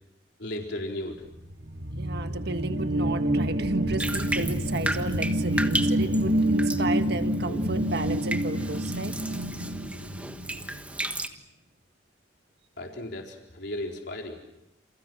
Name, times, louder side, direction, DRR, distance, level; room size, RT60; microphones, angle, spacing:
voice 1, 0.4-1.2 7.5-7.6 12.8-14.4, left 1 dB, 60° left, 1 dB, 4.2 m, -35 dB
sound 1, 1.5-10.7, equal, 80° right, 4.1 m, -27 dB
voice 2, 1.9-9.1, right 2 dB, 55° right, 8 dB, 1.7 m, -33 dB
Bathtub (filling or washing), 4.0-11.3, right 1 dB, 5° right, 1.4 m, -35 dB
29.0 x 29.0 x 6.2 m, 0.84 s
head